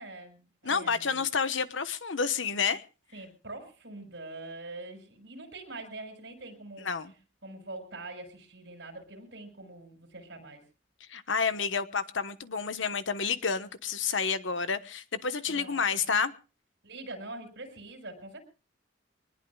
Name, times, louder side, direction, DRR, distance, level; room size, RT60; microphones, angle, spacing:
voice 1, 0.0-1.2 3.1-6.9 7.4-10.6 15.5-16.0 16.8-18.4, right 2 dB, 70° right, 5.8 m, -44 dB
voice 2, 0.6-2.8 6.8-7.1 11.1-16.3, left 5 dB, 90° left, 1.2 m, -29 dB
24.5 x 20.0 x 2.3 m
head